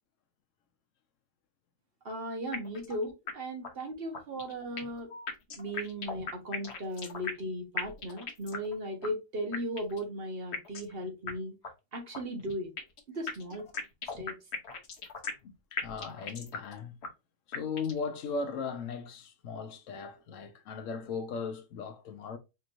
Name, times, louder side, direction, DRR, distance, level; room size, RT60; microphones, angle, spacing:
voice 1, 2.0-5.1 5.5-11.5 11.9-12.7 13.1-13.7 14.2-14.4, equal, 50° right, 1.3 m, -37 dB
sound 1, 2.5-2.9 3.3-3.4 3.6-3.7 4.1-5.0 5.3-7.5 7.8-8.7 9.0-9.1 9.5-10.0 10.5-10.9 11.3-11.4 11.6-11.7 12.1-13.0 13.3-15.5 15.8-16.7 17.0-17.1 17.5-18.0, left 5 dB, 60° left, 1.1 m, -37 dB
voice 2, 15.7-17.0 17.5-22.4, left 5 dB, 85° left, 1.1 m, -37 dB
4.2 x 3.2 x 2.5 m
omnidirectional pair, 1.3 m